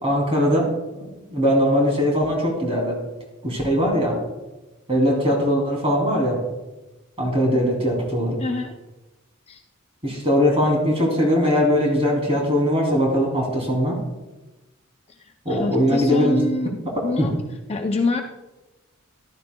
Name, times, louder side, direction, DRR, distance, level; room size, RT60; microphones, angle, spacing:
voice 1, 0.0-3.0 3.4-4.2 4.9-6.4 7.2-8.4 10.0-14.0 15.4-16.4 17.2-17.3, equal, 25° right, -1 dB, 2.7 m, -20 dB
voice 2, 8.4-8.8 9.5-9.6 15.2-16.7 17.0-17.3 17.7-18.2, left 3 dB, 30° left, 4 dB, 0.5 m, -26 dB
14.5 x 12.0 x 2.2 m, 1.1 s
head